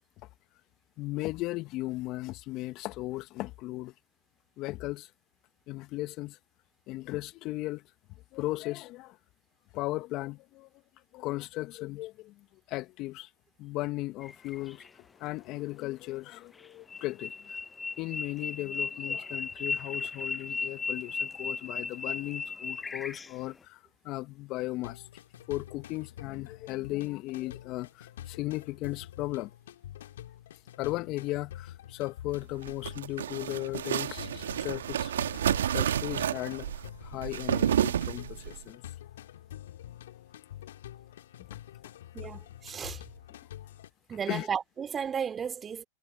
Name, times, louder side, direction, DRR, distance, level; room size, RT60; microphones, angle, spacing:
voice 1, 1.0-3.9 4.6-5.1 5.7-6.4 6.9-7.8 8.3-9.2 9.7-10.7 11.1-13.3 13.6-14.9 15.2-17.6 18.0-25.0 25.5-29.5 30.8-35.2 35.7-36.7 37.0-38.8 44.3-44.5, left 18 dB, 45° left, 1.6 m, -36 dB
sound 1, 14.2-14.9 16.6-23.5, left 4 dB, 15° left, 0.8 m, -36 dB
sound 2, 24.8-43.9, left 12 dB, 70° left, 5.3 m, -47 dB
sound 3, 32.5-38.6, right 10 dB, 80° right, 1.6 m, -30 dB
voice 2, 42.1-43.0 44.1-45.8, right 7 dB, 25° right, 2.9 m, -34 dB
hypercardioid pair, 100°, 0 cm